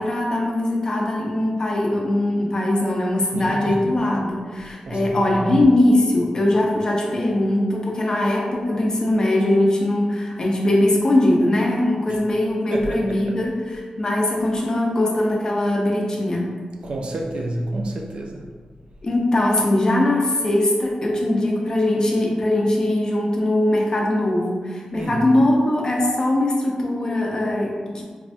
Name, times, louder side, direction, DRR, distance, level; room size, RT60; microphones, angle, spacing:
voice 1, 0.0-16.6 19.0-28.0, left 1 dB, 35° left, -1 dB, 0.5 m, -21 dB
voice 2, 3.3-3.9 4.9-5.5 12.1-12.2 12.7-13.4 16.8-18.5 24.9-25.3, right 1 dB, 55° right, 0 dB, 0.4 m, -30 dB
4.3 x 2.1 x 2.6 m, 1.5 s
wide cardioid pair, 180°, 2 cm